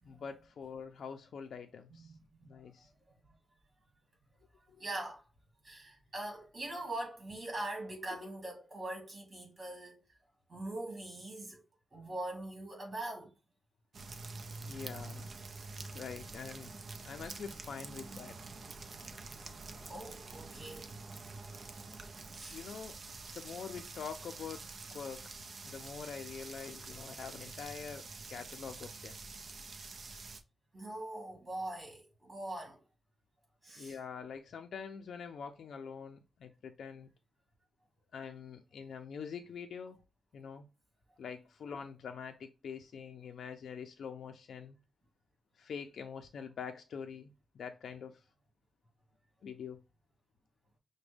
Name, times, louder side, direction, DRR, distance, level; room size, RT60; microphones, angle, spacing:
voice 1, 0.0-2.1 2.4-2.9 4.7-4.8 14.7-15.3 15.9-16.7 17.0-18.4 22.5-23.0 23.3-24.6 24.9-29.2 30.9-31.1 33.8-37.1 38.1-40.0 40.3-40.7 41.2-44.8 45.6-48.2 49.4-49.8, left 6 dB, 75° left, 0.4 m, -45 dB
voice 2, 1.9-2.6 3.1-3.2 4.8-5.2 5.6-10.0 10.5-11.6 11.9-13.3 19.9-20.9 22.3-22.6 30.7-32.8 33.6-34.0, right 1 dB, 30° right, 2.1 m, -42 dB
sound 1, 13.9-30.4, right 3 dB, 50° right, 0.5 m, -47 dB
6.0 x 2.1 x 3.3 m
wide cardioid pair, 125°, 0 cm